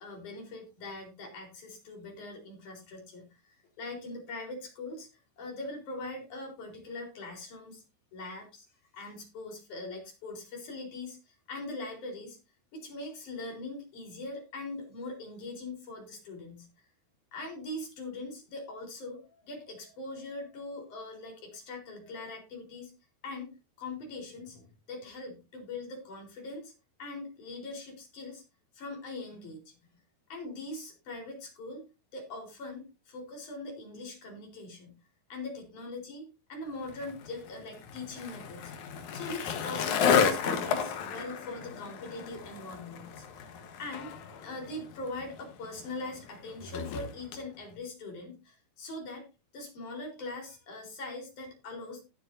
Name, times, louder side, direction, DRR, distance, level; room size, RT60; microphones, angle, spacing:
voice 1, 0.0-5.1 5.4-7.8 8.1-8.7 8.9-12.4 12.7-16.7 17.3-22.9 23.2-23.5 23.8-26.7 27.0-28.4 28.7-29.7 30.3-31.9 32.1-34.9 35.3-38.7 39.1-43.3 43.8-44.2 44.4-49.2 49.5-52.0, left 2 dB, 45° left, 1 dB, 5.4 m, -41 dB
Skateboard, 36.9-47.4, left 7 dB, 65° left, 2.0 m, -32 dB
19.0 x 7.8 x 2.7 m, 0.29 s
omnidirectional pair, 5.3 m